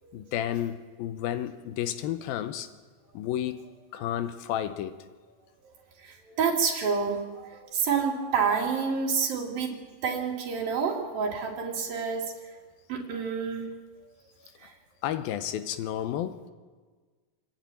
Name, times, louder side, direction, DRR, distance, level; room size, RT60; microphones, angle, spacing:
voice 1, 0.1-2.7 3.1-3.7 3.9-5.0 15.0-16.4, left 11 dB, 90° left, 2.7 m, -31 dB
voice 2, 6.0-9.8 10.0-12.3 12.9-13.7 14.6-14.7, right 6 dB, 80° right, 4.4 m, -28 dB
27.5 x 10.0 x 9.2 m
omnidirectional pair, 4.1 m